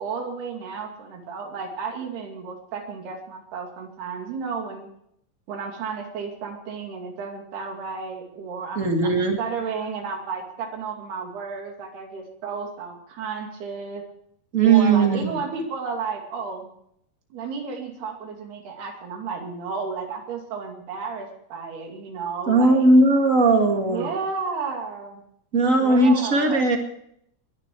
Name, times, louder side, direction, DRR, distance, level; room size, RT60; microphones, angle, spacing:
voice 1, 0.0-4.9 5.5-14.0 14.6-16.7 17.3-22.9 23.8-25.2 25.8-26.6, right 5 dB, 90° right, 2 dB, 4.6 m, -32 dB
voice 2, 8.8-9.4 14.5-15.4 22.5-24.1 25.5-26.8, right 3 dB, 30° right, 3 dB, 1.7 m, -18 dB
21.0 x 11.0 x 4.7 m, 0.71 s
omnidirectional pair, 4.4 m